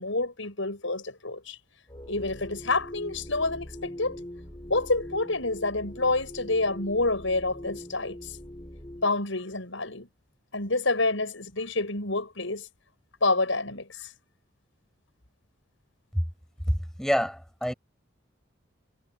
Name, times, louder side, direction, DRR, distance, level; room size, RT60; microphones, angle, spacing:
voice 1, 0.0-1.6 2.1-4.2 4.7-8.3 9.0-10.1 10.5-12.7 13.2-14.1, left 2 dB, 70° left, 6.5 m, -28 dB
sound 1, 1.9-9.1, equal, 20° left, 3.7 m, -42 dB
voice 2, 16.7-17.7, equal, ahead, 6.1 m, -27 dB
head